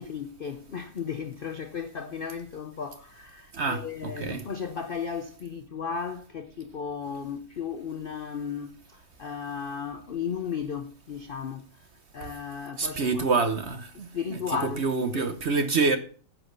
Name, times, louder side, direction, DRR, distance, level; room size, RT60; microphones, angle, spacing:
voice 1, 0.0-11.9 12.1-13.3 13.9-14.9 15.1-15.3, left 6 dB, 60° left, 0.5 m, -35 dB
voice 2, 3.5-4.4 12.8-14.1 14.5-16.0, right 4 dB, 50° right, 0.9 m, -27 dB
10.0 x 6.2 x 6.7 m
omnidirectional pair, 1.9 m